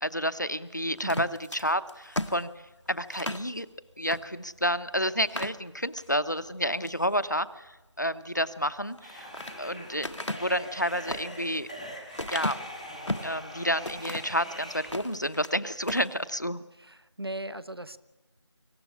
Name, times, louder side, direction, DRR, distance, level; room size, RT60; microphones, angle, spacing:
voice 1, 0.0-1.3 1.5-2.5 2.9-3.7 4.0-9.3 9.6-11.7 12.3-12.6 13.2-16.6, equal, 40° left, 14 dB, 0.8 m, -30 dB
sound 1, 1.0-3.5 4.1-4.2 4.6-4.7 5.2-6.1 6.6-7.0 8.8-9.6 10.0-13.4 13.8-14.4 14.8-15.6 15.8-16.1, left 1 dB, 80° left, 1.2 m, -36 dB
voice 2, 1.0-1.4 16.7-18.0, right 1 dB, 55° right, 16 dB, 1.0 m, -38 dB
sound 2, 9.0-14.9, equal, ahead, 0.8 m, -43 dB
25.0 x 15.5 x 10.0 m, 1.1 s
figure-of-eight pair, 175°, 15 cm